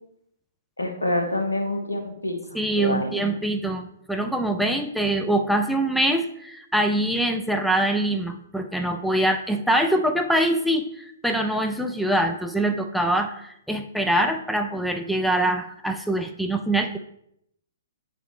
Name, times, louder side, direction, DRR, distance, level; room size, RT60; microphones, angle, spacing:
voice 1, 0.8-3.3, left 1 dB, 85° left, 3 dB, 1.2 m, -27 dB
voice 2, 2.5-17.0, right 1 dB, ahead, 5 dB, 0.4 m, -24 dB
8.0 x 4.0 x 3.1 m, 0.74 s
figure-of-eight pair, 120°, 0 cm